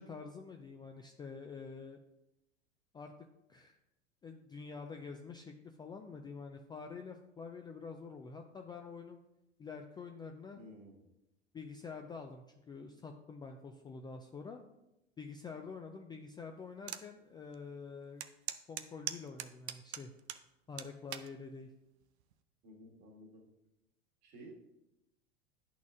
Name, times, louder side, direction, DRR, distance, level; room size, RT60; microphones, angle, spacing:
voice 1, 0.0-2.0 2.9-3.1 3.5-3.8 4.2-9.2 9.6-10.6 11.5-14.6 15.2-18.2 18.7-20.1 20.7-21.7, left 5 dB, 15° left, 3 dB, 0.3 m, -47 dB
voice 2, 10.5-11.1 22.6-23.5 24.2-24.5, right 1 dB, 50° right, 0 dB, 1.8 m, -54 dB
sound 1, 16.9-17.1 17.5-17.6 18.2-20.4 20.8-21.3 22.0-22.3, right 11 dB, 75° right, 0.5 m, -41 dB
10.5 x 4.2 x 2.4 m, 0.90 s
hypercardioid pair, 90°, 33 cm